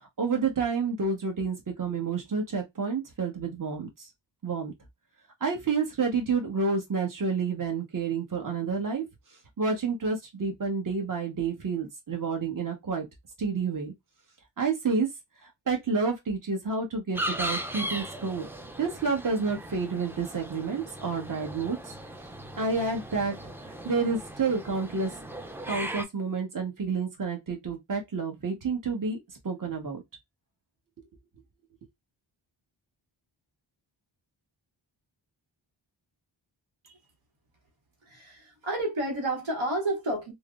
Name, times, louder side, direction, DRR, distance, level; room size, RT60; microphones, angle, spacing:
voice 1, 0.0-4.1 4.4-4.7 5.4-9.0 9.6-13.1 13.4-13.9 14.6-15.1 15.4-18.5 18.8-21.8 22.6-23.3 23.8-25.1 25.7-29.2 29.4-30.0, right 4 dB, 45° right, 1.1 m, -29 dB
sound 1, 17.1-26.0, right 1 dB, 5° right, 0.3 m, -38 dB
voice 2, 38.1-40.3, right 1 dB, 75° right, 1.0 m, -30 dB
3.2 x 2.0 x 2.4 m
wide cardioid pair, 60°, 47 cm